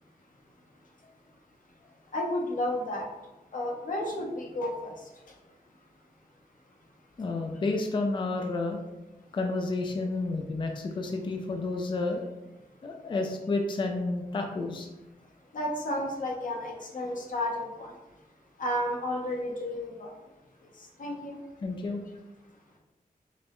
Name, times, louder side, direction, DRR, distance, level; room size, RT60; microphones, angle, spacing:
voice 1, 2.1-3.1 3.5-5.4 15.5-18.2 18.6-20.1 20.6-21.4, left 1 dB, 60° left, -1 dB, 0.8 m, -32 dB
voice 2, 7.2-8.8 9.3-12.2 12.8-14.9 21.6-22.0, left 3 dB, 35° left, 3 dB, 0.4 m, -30 dB
5.3 x 2.0 x 3.0 m, 1.0 s
wide cardioid pair, 155°, 15 cm